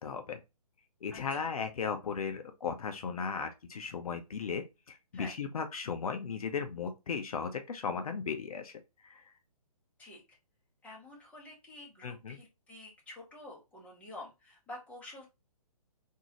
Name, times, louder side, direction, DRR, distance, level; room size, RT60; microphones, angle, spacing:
voice 1, 0.0-0.4 1.0-8.7 9.0-9.2 12.0-12.4, left 6 dB, 65° left, 0.7 m, -36 dB
voice 2, 1.1-1.5 5.1-5.3 10.0-10.4 10.8-15.3, left 1 dB, 5° left, 1.3 m, -49 dB
3.8 x 2.7 x 2.9 m
hypercardioid pair, 140°, 19 cm